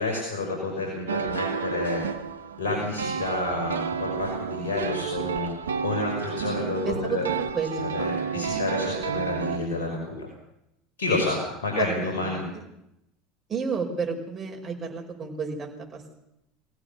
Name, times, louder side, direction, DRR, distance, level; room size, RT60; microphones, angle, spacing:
voice 1, 0.0-2.0 2.6-5.5 5.8-7.3 7.8-10.3 11.0-12.4, left 2 dB, 80° left, 0 dB, 5.6 m, -29 dB
sound 1, 1.1-9.6, right 6 dB, 90° right, 1.2 m, -31 dB
voice 2, 6.4-8.5 11.8-12.6 13.5-16.1, right 5 dB, 30° right, 1 dB, 5.5 m, -32 dB
23.5 x 16.5 x 7.0 m, 0.84 s
hypercardioid pair, 80°, 0 cm